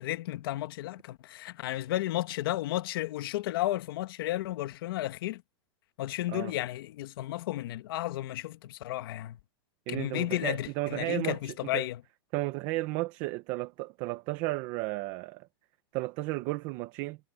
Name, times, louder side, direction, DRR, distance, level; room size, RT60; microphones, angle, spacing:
voice 1, 0.0-5.4 6.0-9.4 9.9-12.0, left 15 dB, 55° left, 1.5 m, -33 dB
voice 2, 9.9-11.8 12.3-15.5 15.9-17.2, right 20 dB, 30° right, 1.0 m, -34 dB
supercardioid pair, 170°, 14 cm